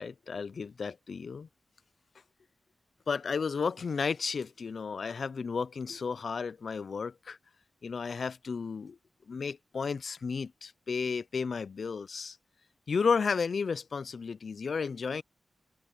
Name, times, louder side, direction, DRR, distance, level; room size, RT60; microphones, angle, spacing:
voice 1, 0.0-1.5 3.1-7.4 7.8-9.0 9.3-12.4 12.9-15.2, left 5 dB, 70° left, 0.5 m, -33 dB
cardioid pair, 40°, 0 cm